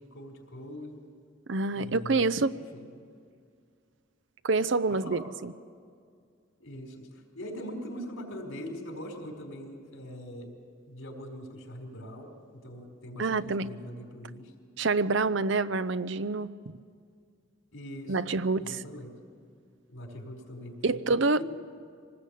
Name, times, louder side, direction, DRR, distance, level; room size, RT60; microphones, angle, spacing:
voice 1, 0.1-1.0 1.7-3.0 4.9-5.2 6.6-10.5 10.9-14.5 17.7-19.2 19.9-21.0 21.3-21.4, equal, 85° left, 2 dB, 4.7 m, -42 dB
voice 2, 1.5-2.5 4.4-5.5 13.2-13.7 14.8-16.5 18.1-18.8 20.8-21.4, right 3 dB, 65° right, 14 dB, 0.7 m, -27 dB
25.0 x 19.5 x 8.5 m, 2.1 s
head